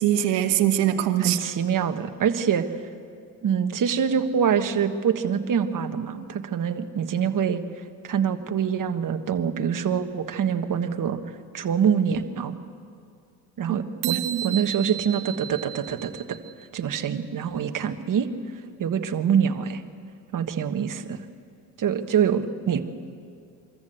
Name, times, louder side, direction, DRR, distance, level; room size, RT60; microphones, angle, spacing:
voice 1, 0.0-1.4 13.7-13.8 14.0-14.6, right 12 dB, 70° right, 7 dB, 1.6 m, -23 dB
voice 2, 1.2-2.6 3.4-7.6 8.0-11.2 11.5-12.6 13.6-16.4 16.7-18.3 18.8-19.8 20.3-21.2 21.8-22.9, right 7 dB, 45° right, 7 dB, 1.5 m, -25 dB
sound 1, 14.0-16.7, right 12 dB, 85° right, 1.2 m, -34 dB
24.5 x 14.0 x 8.0 m, 2.3 s
supercardioid pair, 75°, 45 cm